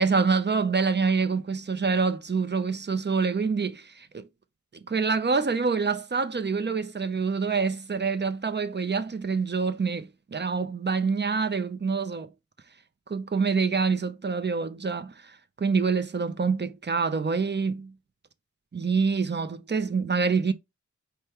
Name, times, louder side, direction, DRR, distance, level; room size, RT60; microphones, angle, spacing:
voice 1, 0.0-4.3 4.9-12.3 13.1-17.9 18.7-20.5, right 5 dB, 35° right, 0.6 m, -26 dB
5.2 x 2.2 x 4.4 m
wide cardioid pair, 75°, 30 cm